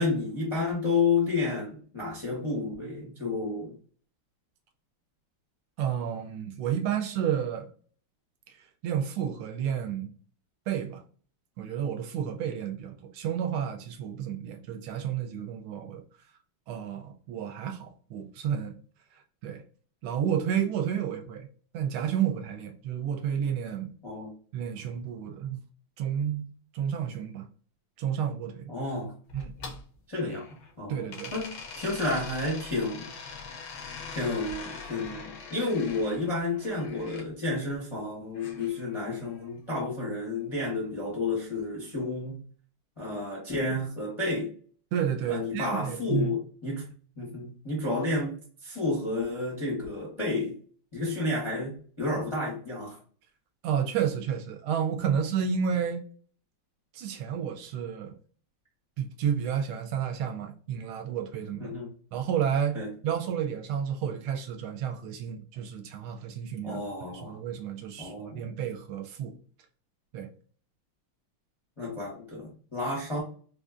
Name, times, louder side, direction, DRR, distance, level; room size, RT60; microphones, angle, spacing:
voice 1, 0.0-3.7 24.0-24.3 28.7-29.1 30.1-30.4 30.8-33.1 34.1-42.4 43.0-44.5 45.3-46.9 47.2-48.3 48.6-50.5 50.9-53.0 61.6-61.9 62.7-62.9 66.6-67.4 68.0-68.4 71.8-73.2, left 3 dB, 30° left, 0.5 m, -31 dB
voice 2, 5.8-7.7 8.5-10.1 10.7-11.0 11.6-16.0 16.7-18.7 19.1-19.6 20.0-21.5 21.7-23.9 24.5-25.6 26.0-26.5 26.7-27.5 28.0-28.7 29.3-29.5 30.9-31.3 44.9-46.3 53.6-56.0 56.9-58.1 59.0-61.7 62.1-66.8 67.1-69.4 70.1-70.3, right 8 dB, 80° right, 1.4 m, -31 dB
sound 1, 29.3-30.7 31.1-37.3 38.3-39.5, left 5 dB, 70° left, 1.0 m, -43 dB
3.8 x 2.6 x 2.4 m
omnidirectional pair, 2.4 m